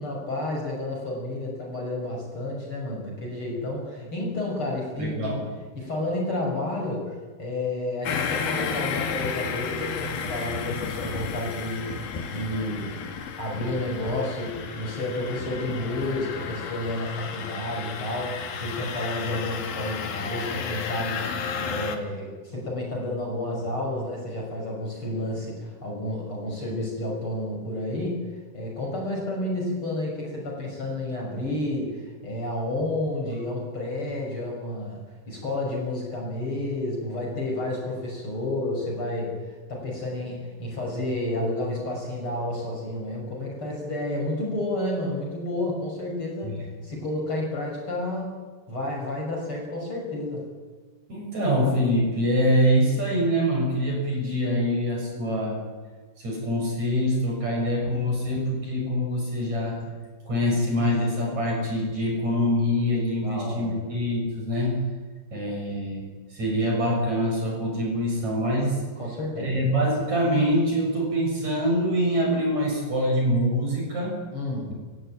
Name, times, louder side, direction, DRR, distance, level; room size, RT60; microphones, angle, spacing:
voice 1, 0.0-5.3 5.8-7.1 7.4-12.9 13.4-28.2 28.5-35.0 35.3-46.5 46.8-48.4 48.7-50.5 63.2-63.7 69.0-69.6 74.3-74.7, left 1 dB, 30° left, -1 dB, 6.8 m, -30 dB
voice 2, 5.0-5.4 46.4-46.6 51.1-55.6 56.2-59.8 60.3-64.8 65.3-68.8 69.4-74.2, equal, 45° right, -1 dB, 8.2 m, -24 dB
sound 1, 8.1-22.0, left 6 dB, 65° left, 3.7 m, -32 dB
29.5 x 16.0 x 9.1 m, 1.4 s
omnidirectional pair, 4.7 m